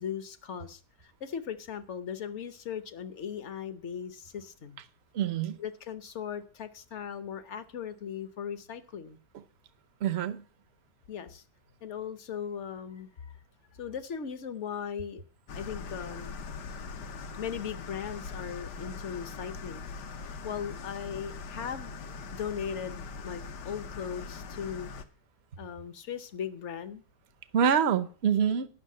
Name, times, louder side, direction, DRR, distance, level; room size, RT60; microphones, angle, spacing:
voice 1, 0.0-4.8 5.6-9.2 11.1-11.4 11.8-13.3 13.8-15.2 15.5-16.5 17.4-19.9 20.2-21.9 22.3-24.9 25.6-27.0, left 8 dB, 55° left, 1.0 m, -38 dB
voice 2, 5.1-5.6 10.0-10.4 27.5-28.7, right 8 dB, 55° right, 0.8 m, -26 dB
sound 1, 15.5-25.1, left 4 dB, 80° left, 1.5 m, -41 dB
10.0 x 6.2 x 7.5 m
omnidirectional pair, 1.8 m